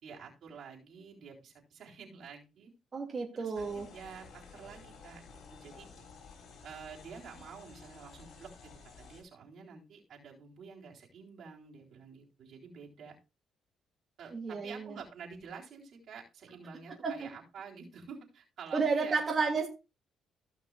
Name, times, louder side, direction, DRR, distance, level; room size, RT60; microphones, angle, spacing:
voice 1, 0.0-2.7 3.3-5.2 5.5-5.9 6.6-13.2 14.2-19.6, right 6 dB, 70° right, 3.9 m, -49 dB
voice 2, 2.9-3.8 14.3-15.0 17.0-17.3 18.7-19.7, right 4 dB, 40° right, 2.6 m, -31 dB
sound 1, 3.5-9.2, left 5 dB, 75° left, 4.9 m, -53 dB
17.0 x 6.1 x 2.5 m
cardioid pair, 90°, 0 cm